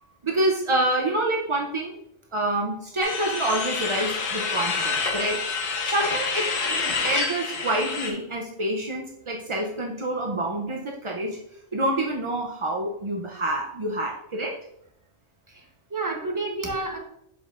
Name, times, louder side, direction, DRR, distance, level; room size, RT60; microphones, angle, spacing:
voice 1, 0.2-2.0 2.3-5.4 5.9-6.6 7.0-11.4 11.7-14.6, right 1 dB, 50° right, 0 dB, 0.3 m, -27 dB
sound 1, 3.0-8.1, left 4 dB, 80° left, 1.3 m, -27 dB
voice 2, 6.7-7.0 15.5-15.6 15.9-17.0, right 3 dB, 15° right, 1 dB, 0.8 m, -30 dB
7.2 x 5.4 x 2.4 m, 0.73 s
omnidirectional pair, 1.4 m